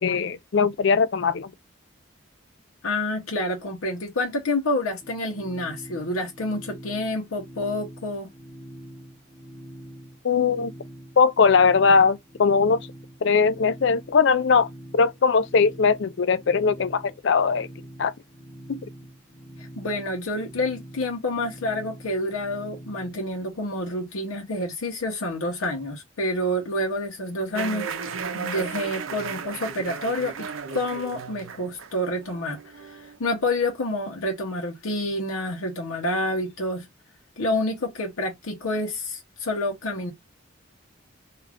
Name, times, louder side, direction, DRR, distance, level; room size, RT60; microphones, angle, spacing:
voice 1, 0.0-1.5 10.2-10.7 11.2-12.8 13.2-14.7 14.9-17.7 18.0-18.1 18.7-18.8, left 5 dB, 55° left, 0.4 m, -20 dB
voice 2, 2.8-8.3 19.6-27.9 28.3-30.5 30.7-36.9 37.4-40.1, left 1 dB, 90° left, 0.8 m, -28 dB
sound 1, 5.0-23.2, right 1 dB, 5° right, 0.7 m, -44 dB
sound 2, 27.5-33.2, right 5 dB, 70° right, 0.5 m, -35 dB
2.4 x 2.4 x 3.3 m
head